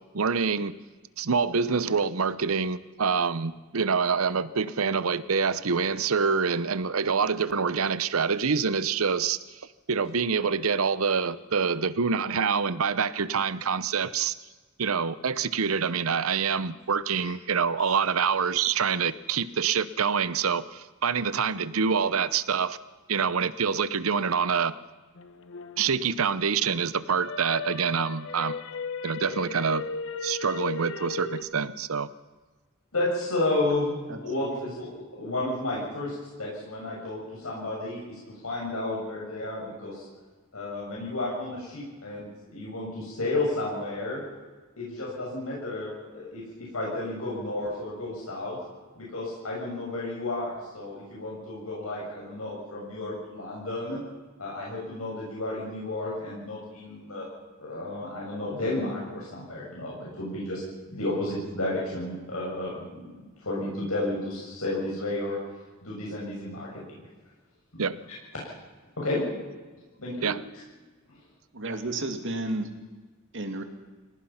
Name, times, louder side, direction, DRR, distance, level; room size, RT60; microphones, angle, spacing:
voice 1, 0.1-0.8 1.2-9.6 9.9-14.3 14.8-22.8 23.1-24.7 25.8-28.5 29.0-29.9 30.2-32.1 67.8-68.0 70.2-70.4, right 6 dB, 80° right, 16 dB, 0.8 m, -26 dB
sound 1, 25.2-26.7 27.1-31.4, left 4 dB, 65° left, 1.2 m, -36 dB
voice 2, 32.9-34.9 35.2-40.0 40.5-44.2 44.8-48.6 49.0-54.0 54.4-57.3 57.6-60.6 60.9-63.1 63.4-65.4 65.8-67.0 67.7-67.8 69.0-69.2 70.0-70.3, left 2 dB, 85° left, -4 dB, 6.7 m, -32 dB
voice 3, 71.5-72.7 73.3-73.6, right 2 dB, 60° right, 6 dB, 2.4 m, -32 dB
29.0 x 17.5 x 5.7 m, 1.3 s
head